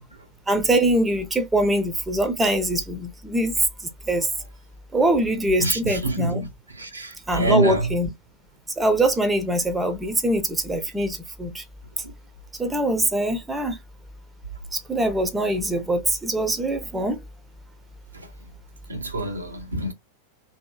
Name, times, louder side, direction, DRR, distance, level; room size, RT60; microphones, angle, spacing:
voice 1, 0.5-3.5 4.1-4.3 4.9-6.4 7.3-8.1 8.8-11.6 12.6-13.8 14.7-17.2, right 1 dB, 10° right, 0.8 m, -23 dB
voice 2, 5.6-6.5 6.7-8.0 18.1-18.3 18.9-19.9, right 2 dB, 80° right, 1.0 m, -26 dB
2.9 x 2.8 x 2.3 m
figure-of-eight pair, 90°, 0 cm